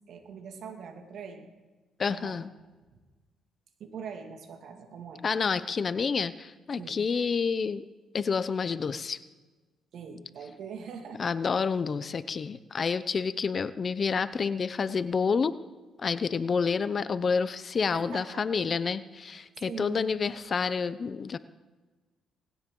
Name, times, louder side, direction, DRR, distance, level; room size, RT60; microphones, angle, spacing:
voice 1, 0.1-1.5 2.1-2.4 2.9-3.0 3.8-5.2 6.8-7.0 9.9-11.2 17.7-18.5 19.3-20.0, right 6 dB, 70° right, 4 dB, 2.2 m, -42 dB
voice 2, 2.0-2.5 5.2-7.8 8.1-9.2 11.2-15.6 16.0-21.4, left 5 dB, 40° left, 14 dB, 0.7 m, -29 dB
19.5 x 17.0 x 3.8 m, 1.3 s
cardioid pair, 90°, 0 cm